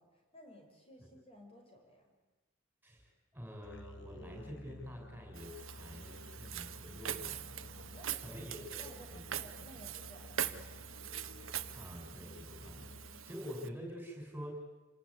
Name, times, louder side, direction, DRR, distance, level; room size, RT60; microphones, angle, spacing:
voice 1, 0.0-2.2 7.7-10.9 13.3-13.4, equal, 30° left, 3 dB, 5.7 m, -57 dB
voice 2, 2.8-7.6 8.2-9.3 11.7-14.6, equal, 10° right, 1 dB, 6.5 m, -47 dB
Musical instrument, 3.6-13.4, left 2 dB, 65° left, 1.3 m, -53 dB
Walk footsteps, 5.4-13.7, right 10 dB, 90° right, 1.3 m, -43 dB
28.0 x 18.5 x 9.7 m, 1.1 s
head